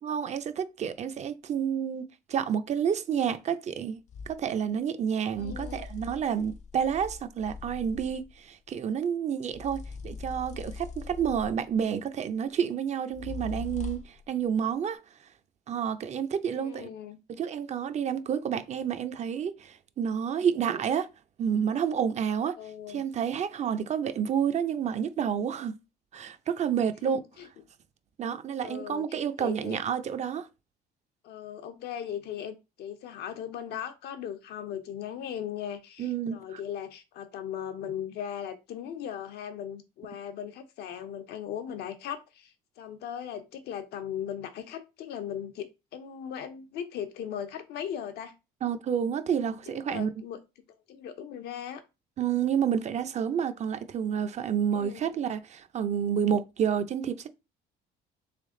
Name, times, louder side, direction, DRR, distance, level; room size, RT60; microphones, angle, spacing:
voice 1, 0.0-2.0 2.3-15.0 15.7-16.9 17.3-21.1 21.4-22.6 22.9-25.8 26.1-27.2 28.2-30.5 36.0-36.6 48.6-50.1 52.2-57.3, right 8 dB, 40° right, 0.6 m, -29 dB
sound 1, 4.1-4.4 5.3-8.3 9.5-11.8 13.1-14.2, left 4 dB, 45° left, 0.6 m, -41 dB
voice 2, 5.4-5.9 16.5-17.2 22.6-23.0 27.0-27.5 28.6-29.8 31.2-48.3 49.5-50.4 50.9-51.8 54.7-55.1, left 9 dB, 75° left, 0.9 m, -38 dB
3.4 x 3.4 x 3.7 m
cardioid pair, 110°, 17 cm